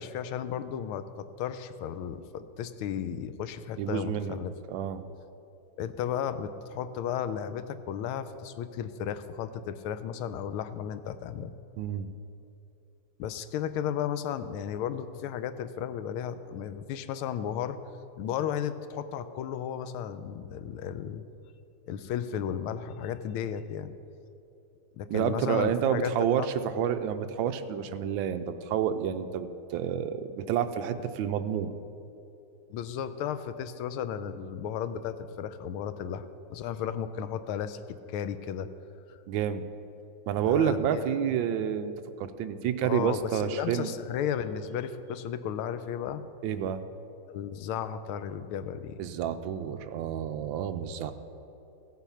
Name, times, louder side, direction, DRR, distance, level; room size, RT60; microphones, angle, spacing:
voice 1, 0.0-4.5 5.8-11.5 13.2-17.8 18.2-21.2 21.9-23.9 24.9-26.1 26.4-26.5 32.7-37.8 38.1-38.7 39.1-39.2 40.4-41.0 42.8-46.2 47.3-49.0, left 9 dB, 90° left, 12 dB, 1.5 m, -34 dB
voice 2, 3.8-4.4 4.7-5.0 11.8-12.1 25.1-31.7 39.3-39.7 40.3-43.9 46.4-46.8 49.0-51.1, right 9 dB, 75° right, 9 dB, 1.3 m, -29 dB
15.5 x 8.2 x 5.6 m, 2.8 s
omnidirectional pair, 2.3 m